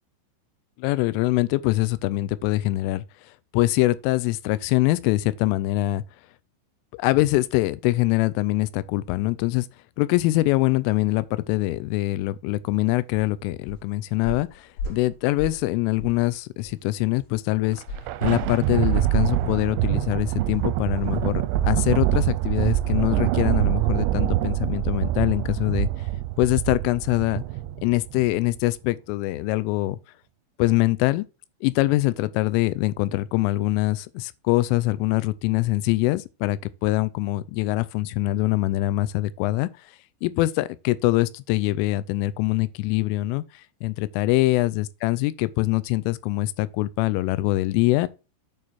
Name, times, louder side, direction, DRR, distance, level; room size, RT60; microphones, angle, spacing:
voice 1, 0.8-3.0 3.5-6.0 7.0-9.7 10.0-17.8 18.2-21.3 21.6-25.9 26.4-27.4 27.8-30.0 30.6-31.3 31.6-39.7 40.2-48.1, left 18 dB, 90° left, 3.2 m, -23 dB
sound 1, 13.1-13.3 13.7-13.9 14.2-15.7 16.0-16.2 16.6-16.8 17.9-21.9 22.2-22.4 22.8-22.9, left 1 dB, 40° left, 3.9 m, -37 dB
Thunder, 17.6-28.4, right 15 dB, 85° right, 2.7 m, -25 dB
8.7 x 4.7 x 4.2 m
omnidirectional pair, 5.6 m